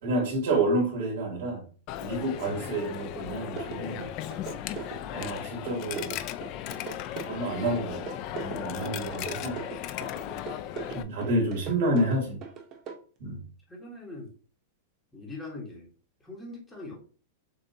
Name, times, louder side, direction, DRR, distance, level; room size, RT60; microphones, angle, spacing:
voice 1, 0.0-1.6 2.0-4.1 5.1-6.2 7.3-8.0 8.3-9.6 10.9-12.4 13.2-13.4, right 1 dB, 55° right, 0 dB, 2.5 m, -29 dB
Coin (dropping), 1.9-11.0, left 12 dB, 35° left, 0.3 m, -36 dB
sound 1, 3.6-13.0, right 6 dB, 25° right, 0.8 m, -40 dB
voice 2, 4.3-4.8 13.7-14.3 15.1-15.9 16.2-17.0, left 2 dB, 10° left, -3 dB, 1.3 m, -42 dB
6.8 x 2.6 x 2.7 m, 0.37 s
supercardioid pair, 160°, 0 cm